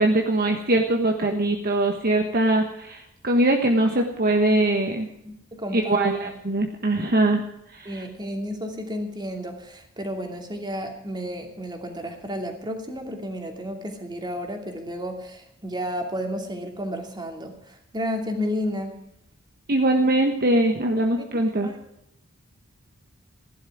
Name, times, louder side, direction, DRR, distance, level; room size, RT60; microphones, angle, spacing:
voice 1, 0.0-5.1 5.7-7.4 7.7-8.0 19.7-21.7, right 1 dB, 45° right, 3 dB, 1.4 m, -22 dB
voice 2, 5.2-6.3 7.8-19.0 21.2-21.3 21.6-21.8, equal, 20° right, 4 dB, 2.7 m, -32 dB
16.0 x 11.5 x 6.2 m, 0.81 s
head